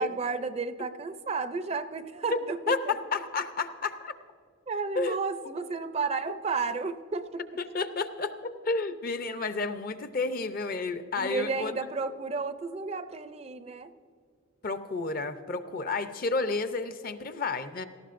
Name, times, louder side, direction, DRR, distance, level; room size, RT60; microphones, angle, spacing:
voice 1, 0.0-2.9 4.7-7.6 11.2-13.9, right 4 dB, 30° right, 11 dB, 0.4 m, -32 dB
voice 2, 2.7-4.1 5.0-5.2 7.7-11.7 14.6-17.8, left 3 dB, 40° left, 10 dB, 0.6 m, -31 dB
18.0 x 14.0 x 2.5 m, 2.3 s
head